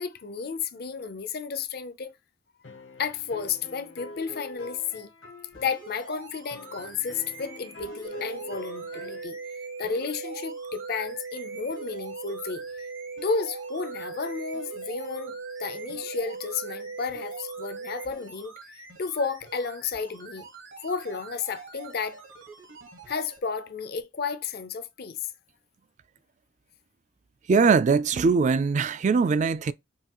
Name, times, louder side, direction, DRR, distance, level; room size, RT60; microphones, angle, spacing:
voice 1, 0.0-2.1 3.0-5.1 5.5-9.4 9.8-12.6 13.2-18.5 19.0-20.5 20.8-22.2 23.1-25.3, left 5 dB, 55° left, 0.6 m, -32 dB
sound 1, 2.6-5.9 6.5-9.3, left 2 dB, 80° left, 1.1 m, -44 dB
sound 2, 5.5-23.4 24.0-24.1, right 4 dB, 75° right, 1.4 m, -47 dB
sound 3, 8.0-18.1, right 4 dB, 60° right, 0.9 m, -38 dB
voice 2, 27.5-29.7, right 5 dB, 40° right, 0.3 m, -21 dB
5.5 x 2.4 x 2.9 m
head